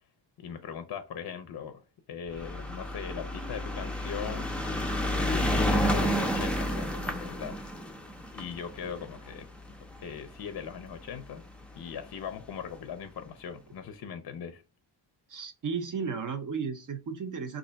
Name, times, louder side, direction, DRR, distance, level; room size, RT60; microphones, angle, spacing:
voice 1, 0.4-4.5 5.3-7.7 8.3-9.5 10.0-11.4 11.8-14.6, left 7 dB, 55° left, 0.5 m, -40 dB
sound 1, 2.3-10.8 11.6-11.7 11.9-12.0 12.3-12.4, equal, 5° left, 0.4 m, -30 dB
voice 2, 15.3-17.6, right 5 dB, 45° right, 0.6 m, -34 dB
3.2 x 2.6 x 3.8 m
wide cardioid pair, 125°, 45 cm